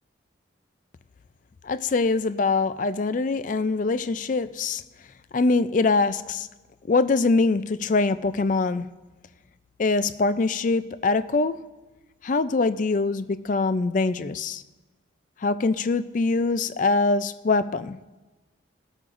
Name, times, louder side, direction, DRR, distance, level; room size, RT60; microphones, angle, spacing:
voice 1, 1.6-4.8 5.3-6.5 6.8-8.9 9.8-11.6 12.2-14.6 15.4-18.0, left 3 dB, 40° left, 14 dB, 0.4 m, -23 dB
19.5 x 8.7 x 2.5 m, 1.2 s
head